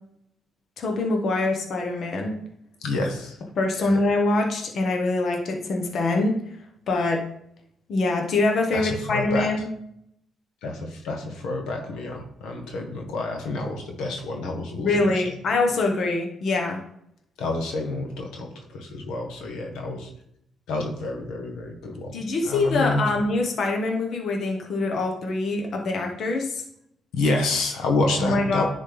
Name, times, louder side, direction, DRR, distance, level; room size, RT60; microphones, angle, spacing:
voice 1, 0.8-2.4 3.6-6.3 6.9-7.2 7.9-9.7 14.8-16.8 22.1-26.6 28.2-28.6, left 2 dB, 60° left, 2 dB, 1.2 m, -24 dB
voice 2, 2.8-3.4 3.8-4.0 8.7-9.5 10.6-14.9 15.1-15.2 17.4-20.1 20.7-22.2 22.4-23.0 27.1-28.6, left 2 dB, 90° left, 2 dB, 1.3 m, -28 dB
10.0 x 4.3 x 3.4 m, 0.74 s
cardioid pair, 90°, 0 cm